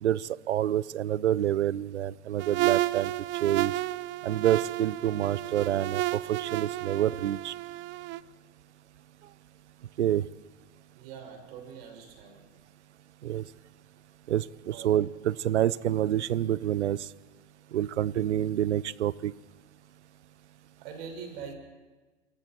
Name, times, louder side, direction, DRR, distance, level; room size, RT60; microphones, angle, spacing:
voice 1, 0.0-3.1 3.4-3.7 4.2-7.5 10.0-10.2 13.2-13.4 14.3-17.1 17.7-19.3, right 11 dB, 85° right, 22 dB, 0.7 m, -27 dB
sound 1, 2.4-8.2, right 17 dB, 35° right, 0.6 m, -31 dB
voice 2, 10.9-12.4 14.7-15.0 20.8-21.6, right 6 dB, 60° right, 4 dB, 6.3 m, -43 dB
28.0 x 22.5 x 4.6 m, 1.3 s
hypercardioid pair, 110°, 34 cm